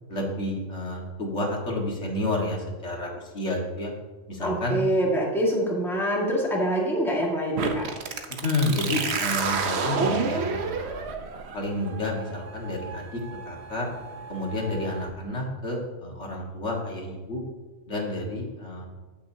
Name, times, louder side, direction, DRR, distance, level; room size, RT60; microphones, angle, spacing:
voice 1, 0.1-3.9 4.3-4.8 8.4-11.1 11.5-13.2 13.5-13.9 14.3-17.4 17.9-18.9, left 1 dB, 65° left, -1 dB, 1.9 m, -30 dB
voice 2, 4.4-7.9, equal, ahead, -3 dB, 1.6 m, -25 dB
sound 1, 7.6-15.1, right 5 dB, 60° right, 1.0 m, -30 dB
16.0 x 6.1 x 2.7 m, 1.3 s
omnidirectional pair, 1.3 m